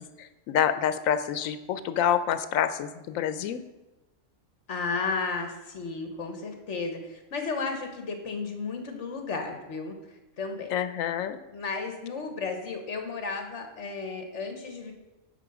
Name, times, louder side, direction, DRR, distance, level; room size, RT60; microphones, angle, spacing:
voice 1, 0.0-3.6 10.7-11.4, left 9 dB, 90° left, 12 dB, 1.0 m, -27 dB
voice 2, 4.7-9.9 10.4-10.7 11.5-14.9, left 4 dB, 65° left, 5 dB, 1.4 m, -33 dB
9.0 x 4.0 x 6.1 m, 1.1 s
omnidirectional pair, 1.4 m